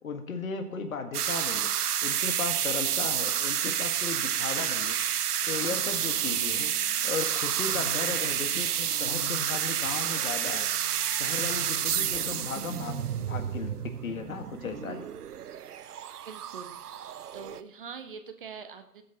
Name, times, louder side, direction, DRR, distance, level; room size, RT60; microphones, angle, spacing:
voice 1, 0.0-1.7 2.0-5.0 5.5-6.7 7.0-10.7 11.2-15.1, left 5 dB, 60° left, 7 dB, 1.8 m, -36 dB
sound 1, 1.1-17.6, right 10 dB, 70° right, 0.7 m, -30 dB
sound 2, 5.4-14.8, left 2 dB, 5° left, 4.8 m, -46 dB
voice 2, 16.3-19.0, right 6 dB, 35° right, 8 dB, 0.8 m, -44 dB
18.0 x 8.2 x 3.1 m, 0.81 s
figure-of-eight pair, 140°, 47 cm